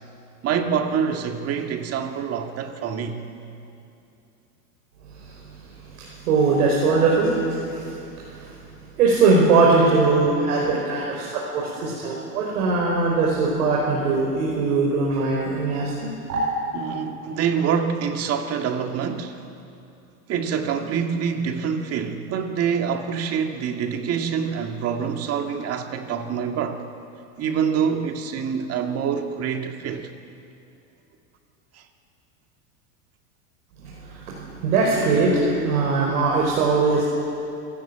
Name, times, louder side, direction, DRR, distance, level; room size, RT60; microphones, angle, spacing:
voice 1, 0.4-3.2 10.1-12.2 16.7-19.4 20.3-26.8 27.4-30.1 31.7-31.8, right 7 dB, 30° right, 2.0 m, -26 dB
voice 2, 6.0-7.9 8.2-8.5 9.0-16.4 33.8-37.0, right 3 dB, 70° right, 5.2 m, -21 dB
27.0 x 15.0 x 9.0 m
supercardioid pair, 130°, 45 cm